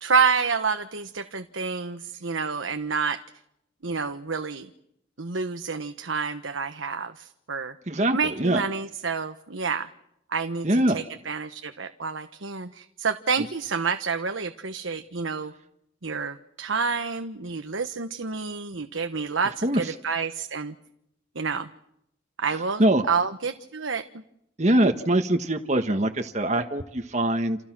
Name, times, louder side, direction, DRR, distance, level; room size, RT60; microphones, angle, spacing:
voice 1, 0.0-3.2 3.8-4.7 5.2-7.7 8.1-9.9 10.3-10.7 10.9-15.5 16.0-20.7 21.3-21.7 22.4-22.8 23.1-24.0, right 5 dB, 90° right, 8 dB, 1.3 m, -28 dB
voice 2, 7.9-8.6 10.6-11.0 13.4-13.5 19.6-19.9 22.5-23.0 24.6-27.6, right 1 dB, 35° right, 5 dB, 1.4 m, -23 dB
29.0 x 28.5 x 6.2 m, 0.80 s
head